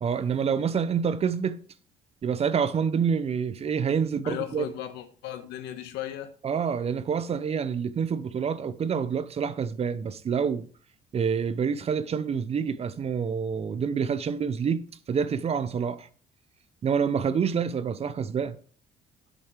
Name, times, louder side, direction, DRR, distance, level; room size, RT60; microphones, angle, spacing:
voice 1, 0.0-1.6 2.2-4.7 6.4-10.7 11.1-16.1 16.8-18.6, right 6 dB, 35° right, 0.7 m, -27 dB
voice 2, 4.2-6.3, left 11 dB, 90° left, 1.4 m, -36 dB
10.5 x 8.2 x 3.4 m
cardioid pair, 110°, 17 cm